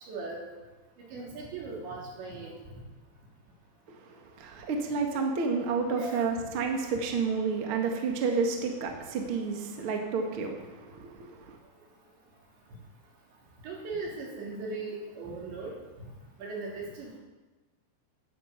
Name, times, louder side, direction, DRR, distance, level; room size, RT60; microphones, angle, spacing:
voice 1, 0.1-0.4 1.1-2.5 6.0-6.3 13.6-15.7 16.4-17.2, right 3 dB, 75° right, -3 dB, 5.8 m, -38 dB
voice 2, 3.9-11.6, right 4 dB, 55° right, 2 dB, 1.5 m, -30 dB
11.5 x 11.0 x 8.2 m, 1.2 s
omnidirectional pair, 5.2 m